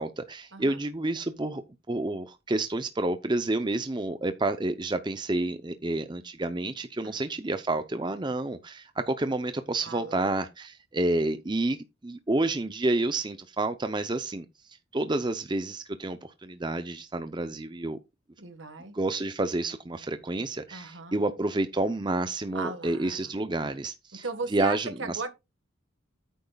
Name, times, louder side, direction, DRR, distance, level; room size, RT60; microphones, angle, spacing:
voice 1, 0.0-1.6 1.9-11.8 12.0-14.4 14.9-18.0 18.9-24.2 24.5-25.3, right 2 dB, 25° right, 0.6 m, -29 dB
voice 2, 9.8-10.3 18.4-18.9 20.7-21.2 22.5-23.3 24.1-25.3, right 4 dB, 70° right, 1.6 m, -37 dB
10.5 x 9.2 x 2.3 m
head